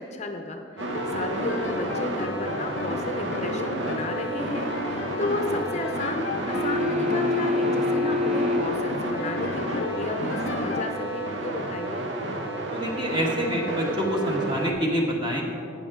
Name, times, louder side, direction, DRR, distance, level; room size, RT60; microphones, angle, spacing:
voice 1, 0.0-12.1, left 2 dB, 40° left, 4 dB, 0.6 m, -33 dB
sound 1, 0.8-14.7, right 1 dB, 85° right, 1.0 m, -31 dB
sound 2, 0.9-10.8, left 4 dB, 90° left, 0.5 m, -35 dB
sound 3, 6.5-8.8 11.4-11.5, left 2 dB, ahead, 1.5 m, -26 dB
voice 2, 12.7-15.4, equal, 25° right, -1 dB, 1.5 m, -26 dB
11.5 x 9.3 x 3.7 m, 2.5 s
head